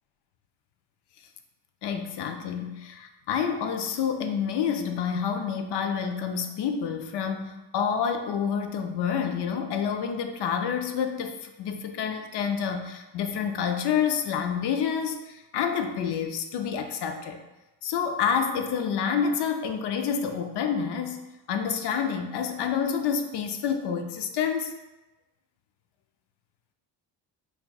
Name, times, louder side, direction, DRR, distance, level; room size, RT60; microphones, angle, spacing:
voice 1, 1.8-17.4 17.8-21.2 21.5-24.7, left 7 dB, 70° left, 6 dB, 0.5 m, -28 dB
5.5 x 2.3 x 2.3 m, 1.0 s
cardioid pair, 105°, 43 cm